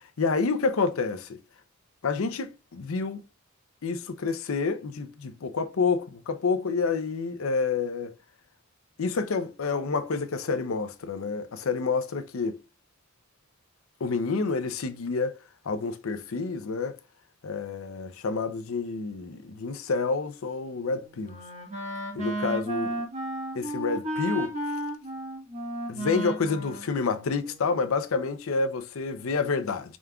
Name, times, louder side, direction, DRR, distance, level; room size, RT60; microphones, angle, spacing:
voice 1, 0.2-1.4 2.0-3.2 3.8-8.1 9.0-12.6 14.0-15.4 15.7-17.0 17.4-21.4 22.1-23.0 23.5-24.5 25.9-30.0, left 4 dB, 85° left, 0.6 m, -28 dB
Wind instrument woodwind instrument, 20.7-27.9, right 1 dB, 35° right, 1.2 m, -34 dB
5.0 x 3.5 x 2.3 m
head